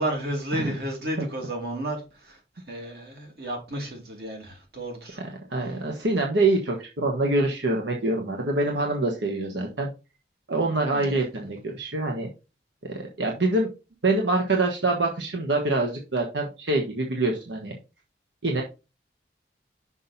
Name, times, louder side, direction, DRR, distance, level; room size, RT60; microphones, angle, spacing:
voice 1, 0.0-2.4 2.7-5.2 5.6-5.7 10.9-11.2, right 1 dB, 60° right, 2.7 m, -32 dB
voice 2, 5.5-9.9 10.5-12.3 12.9-13.7 14.0-17.7 18.4-18.6, right 2 dB, 85° right, 1.4 m, -25 dB
6.2 x 5.6 x 4.1 m
head